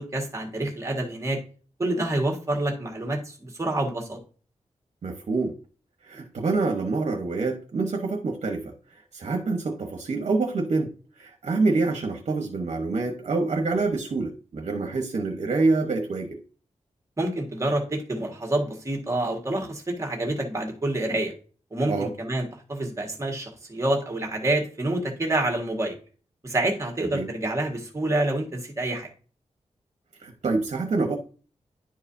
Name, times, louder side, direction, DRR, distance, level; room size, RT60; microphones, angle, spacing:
voice 1, 0.0-1.4 1.8-4.2 17.2-21.3 21.7-26.0 26.4-29.1, right 1 dB, 25° right, 1 dB, 1.7 m, -27 dB
voice 2, 5.0-5.6 6.0-10.9 11.2-16.4 21.9-22.1 27.1-27.3 30.2-31.2, right 3 dB, 60° right, 4 dB, 1.1 m, -26 dB
10.5 x 4.8 x 2.7 m, 0.38 s
wide cardioid pair, 160°, 12 cm